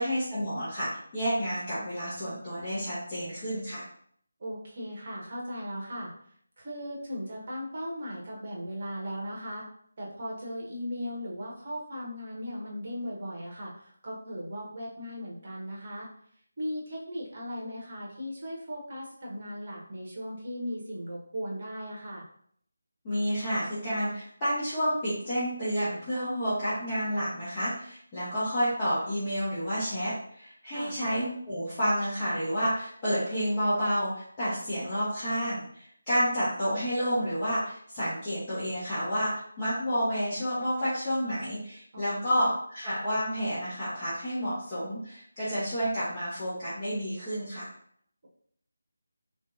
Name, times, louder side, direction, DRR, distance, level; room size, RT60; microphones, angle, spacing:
voice 1, 0.0-3.8 23.0-47.7, equal, 20° left, -13 dB, 1.3 m, -30 dB
voice 2, 4.4-6.1 6.6-9.7 10.0-16.1 16.6-22.3 30.7-30.9 41.9-42.3, equal, 35° right, -3 dB, 1.1 m, -37 dB
4.0 x 3.2 x 2.6 m, 0.64 s
figure-of-eight pair, 155°, 0 cm